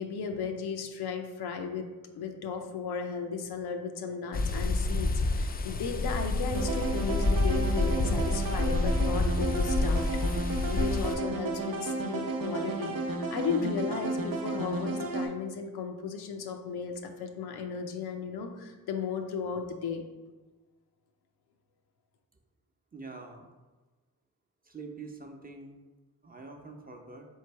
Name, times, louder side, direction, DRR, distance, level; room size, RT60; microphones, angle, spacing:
voice 1, 0.0-1.9 2.1-20.0, left 5 dB, 85° left, 4 dB, 0.5 m, -35 dB
sound 1, 4.3-11.2, left 2 dB, 25° left, 0.3 m, -28 dB
sound 2, 6.5-15.3, right 2 dB, 65° right, 0.7 m, -33 dB
voice 2, 22.9-23.5 24.6-25.8 26.2-27.3, right 3 dB, 25° right, 2 dB, 0.7 m, -45 dB
3.3 x 3.2 x 4.4 m, 1.2 s
cardioid pair, 50°, 37 cm